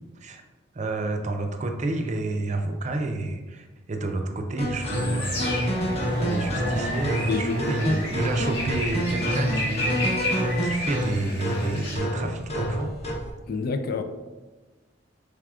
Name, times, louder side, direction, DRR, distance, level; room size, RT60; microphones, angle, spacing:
voice 1, 0.7-12.9, right 2 dB, 40° right, 4 dB, 0.4 m, -30 dB
sound 1, 4.6-13.3, equal, 35° left, 0.9 m, -27 dB
sound 2, 4.8-12.0, left 1 dB, 90° left, 1.4 m, -33 dB
voice 2, 7.2-7.5 13.5-14.0, left 5 dB, 55° left, 7 dB, 0.3 m, -27 dB
4.8 x 3.4 x 2.4 m, 1.2 s
head